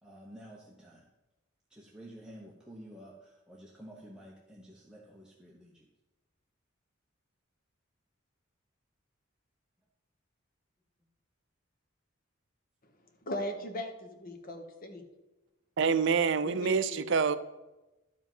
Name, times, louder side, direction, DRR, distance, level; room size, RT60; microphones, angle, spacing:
voice 1, 0.0-1.0 1.7-5.9, right 1 dB, 5° right, 0.9 m, -51 dB
voice 2, 13.3-15.0 16.4-17.0, left 1 dB, 45° left, 1.2 m, -38 dB
voice 3, 15.8-17.4, right 5 dB, 60° right, 0.5 m, -26 dB
12.0 x 5.1 x 5.4 m
head